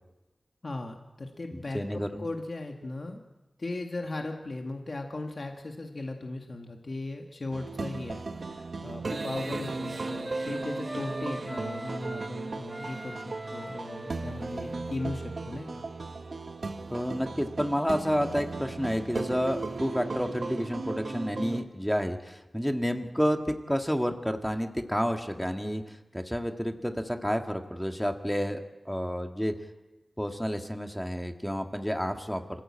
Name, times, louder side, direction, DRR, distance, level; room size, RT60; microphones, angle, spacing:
voice 1, 0.6-3.2 3.6-15.8, left 2 dB, 60° left, 2 dB, 2.0 m, -37 dB
voice 2, 1.5-2.2 16.9-29.5 30.2-32.4, equal, 5° left, 4 dB, 1.8 m, -30 dB
sound 1, 7.5-21.6, right 3 dB, 75° right, 1.5 m, -36 dB
Wind instrument woodwind instrument, 7.8-12.3 12.7-17.2, right 1 dB, 15° right, 1.5 m, -43 dB
26.0 x 16.0 x 8.7 m, 1.1 s
wide cardioid pair, 55°, 0 cm